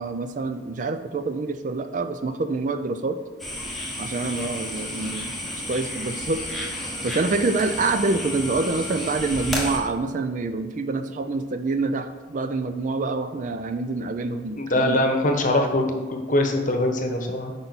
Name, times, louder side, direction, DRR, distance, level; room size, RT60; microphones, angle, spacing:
voice 1, 0.0-3.2 4.0-5.3 5.7-6.4 6.8-15.1, right 3 dB, 40° right, 9 dB, 0.4 m, -26 dB
sound 1, 3.4-9.8, left 1 dB, ahead, 1.2 m, -31 dB
voice 2, 14.6-17.5, left 1 dB, 40° left, 4 dB, 1.0 m, -23 dB
8.7 x 5.5 x 4.1 m, 1.3 s
head